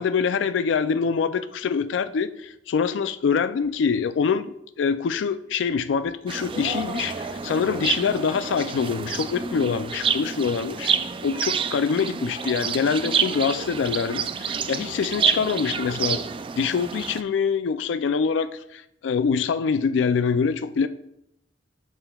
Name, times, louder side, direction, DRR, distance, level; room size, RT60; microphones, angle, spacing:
voice 1, 0.0-10.9 11.2-16.2 16.6-20.9, left 6 dB, 80° left, 0.3 m, -25 dB
sound 1, 6.3-17.2, right 6 dB, 30° right, 0.3 m, -28 dB
11.0 x 5.7 x 2.3 m
head